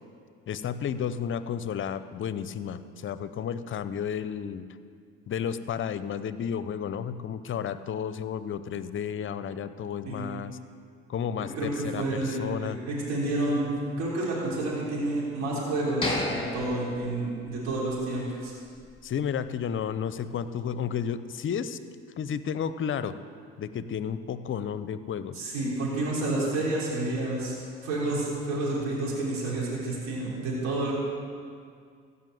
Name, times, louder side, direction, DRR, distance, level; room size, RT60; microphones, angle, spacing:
voice 1, 0.5-4.7 5.3-10.6 11.1-12.8 14.0-14.1 19.0-21.8 22.2-23.1 23.6-25.4, left 8 dB, 45° left, 13 dB, 0.7 m, -32 dB
voice 2, 11.6-13.6 14.0-18.5 25.3-27.5 27.8-30.9, right 2 dB, 65° right, -5 dB, 3.7 m, -29 dB
sound 1, 16.0-17.9 18.3-18.4 18.9-19.1, left 2 dB, 20° left, 2.7 m, -33 dB
15.0 x 5.6 x 7.9 m, 2.2 s
hypercardioid pair, 65°, 29 cm